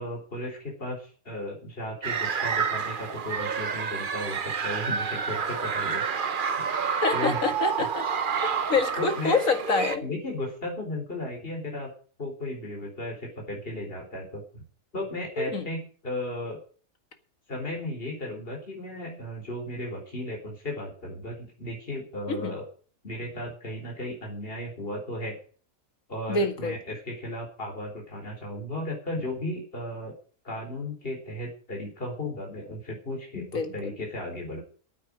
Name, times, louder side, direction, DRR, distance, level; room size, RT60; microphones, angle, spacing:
voice 1, 0.0-6.0 6.6-7.4 9.0-9.4 10.0-11.9 12.2-14.6 14.9-16.6 17.5-22.6 23.0-25.4 26.1-30.1 30.4-34.6, left 1 dB, 35° left, 1 dB, 4.4 m, -35 dB
sound 1, 2.0-10.0, right 6 dB, 40° right, 0.8 m, -29 dB
voice 2, 7.0-8.0 8.4-10.0 15.4-15.7 22.3-22.6 26.3-26.8 33.4-34.0, left 4 dB, 55° left, 7 dB, 2.3 m, -27 dB
9.5 x 9.3 x 9.8 m, 0.42 s
omnidirectional pair, 1.7 m